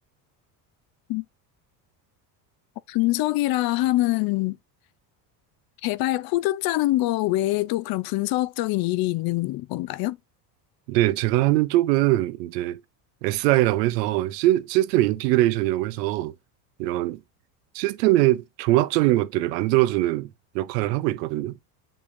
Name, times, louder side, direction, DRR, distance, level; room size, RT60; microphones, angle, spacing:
voice 1, 2.9-4.6 5.8-10.2, left 17 dB, 50° left, 0.5 m, -24 dB
voice 2, 10.9-12.8 13.2-16.3 16.8-17.2 17.7-20.3 20.5-21.5, right 16 dB, 85° right, 0.7 m, -22 dB
6.9 x 5.4 x 2.6 m
supercardioid pair, 95°, 48 cm